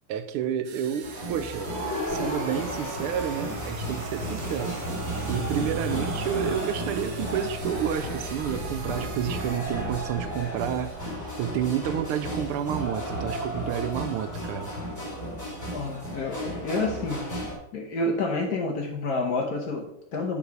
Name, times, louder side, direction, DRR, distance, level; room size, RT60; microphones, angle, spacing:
voice 1, 0.1-1.7 2.1-4.8 5.3-14.7, right 9 dB, 85° right, 1.5 m, -30 dB
sound 1, 0.6-9.6, right 9 dB, 70° right, 1.2 m, -46 dB
sound 2, 1.0-17.5, equal, 10° left, 1.9 m, -33 dB
sound 3, 3.2-11.5, right 1 dB, 30° right, 0.8 m, -39 dB
voice 2, 15.7-20.4, left 2 dB, 55° left, 1.2 m, -29 dB
7.3 x 4.1 x 4.6 m
omnidirectional pair, 2.4 m